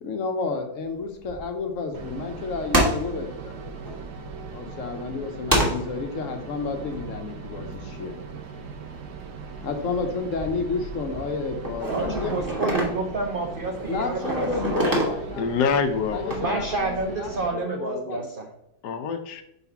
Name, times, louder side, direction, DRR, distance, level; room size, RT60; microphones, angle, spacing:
voice 1, 0.0-3.8 4.5-8.1 9.6-12.3 13.9-15.6 16.1-18.3, left 4 dB, 55° left, 5 dB, 1.1 m, -31 dB
sound 1, 0.9-2.3 2.7-5.1 5.5-8.5 8.8-9.5 9.8-17.0, right 1 dB, 15° right, 1.3 m, -29 dB
sound 2, 1.9-17.5, right 4 dB, 85° right, 1.4 m, -39 dB
voice 2, 11.9-15.0 16.4-18.5, right 3 dB, 70° right, 3 dB, 0.5 m, -29 dB
voice 3, 15.4-16.7 18.8-19.4, left 6 dB, 80° left, 9 dB, 1.3 m, -26 dB
4.9 x 4.1 x 5.6 m, 0.82 s
omnidirectional pair, 1.7 m